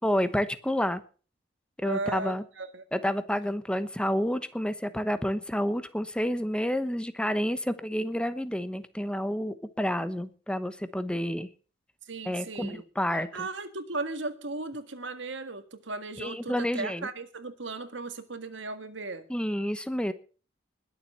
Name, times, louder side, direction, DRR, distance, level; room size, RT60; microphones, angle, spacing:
voice 1, 0.0-1.0 1.8-2.4 2.9-11.5 12.2-13.5 16.2-17.1 19.3-20.1, equal, 5° left, 12 dB, 1.0 m, -29 dB
voice 2, 1.8-2.8 12.1-12.8 13.1-19.3, right 3 dB, 70° right, 10 dB, 1.8 m, -36 dB
21.0 x 7.5 x 5.6 m, 0.39 s
head